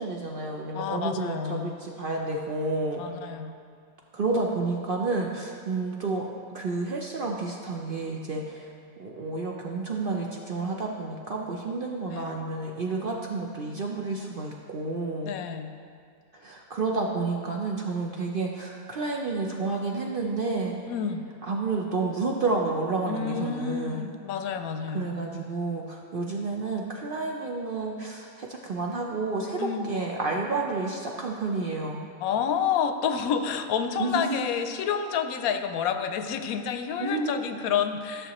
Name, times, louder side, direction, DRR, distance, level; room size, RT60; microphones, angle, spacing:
voice 1, 0.0-3.1 4.1-8.7 9.0-15.3 16.3-20.8 21.4-24.1 24.9-32.1 34.0-34.4 37.0-37.4, right 3 dB, 55° right, -1 dB, 0.6 m, -30 dB
voice 2, 0.7-1.7 3.0-3.6 12.1-12.4 15.2-15.7 20.9-21.2 23.1-25.1 29.6-29.9 32.2-38.3, left 7 dB, 80° left, 8 dB, 1.0 m, -29 dB
13.5 x 6.7 x 3.0 m, 2.2 s
omnidirectional pair, 1.5 m